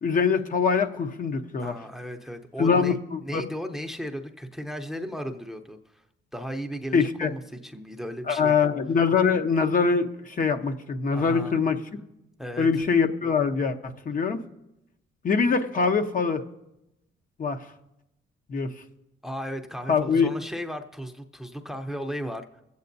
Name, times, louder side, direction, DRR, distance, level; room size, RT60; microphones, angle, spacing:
voice 1, 0.0-1.7 2.6-3.4 6.9-7.3 8.3-11.8 12.6-13.8 14.1-14.4 15.2-16.4 17.4-17.7 18.5-18.7 19.9-20.3, left 5 dB, 45° left, 5 dB, 0.9 m, -23 dB
voice 2, 1.6-3.0 3.2-6.0 6.3-8.7 11.1-11.6 12.4-12.8 19.2-22.6, equal, ahead, 5 dB, 0.7 m, -35 dB
23.0 x 8.3 x 2.7 m, 0.90 s
cardioid pair, 90°, 20 cm